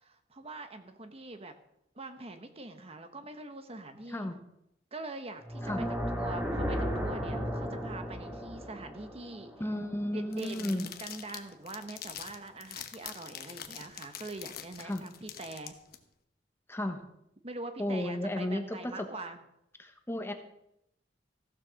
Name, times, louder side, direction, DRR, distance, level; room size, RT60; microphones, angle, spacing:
voice 1, 0.0-1.5 1.9-4.3 4.9-5.6 6.2-9.5 10.1-15.7 17.4-19.4, right 2 dB, 35° right, 7 dB, 1.1 m, -43 dB
sound 1, 5.4-10.5, equal, 10° right, 2.4 m, -35 dB
voice 2, 9.6-10.9 14.8-15.0 16.7-17.0 17.8-19.1 19.8-20.3, left 1 dB, 15° left, 6 dB, 1.2 m, -33 dB
sound 2, 10.3-16.0, left 9 dB, 60° left, 1.0 m, -45 dB
15.0 x 7.4 x 6.4 m, 0.80 s
head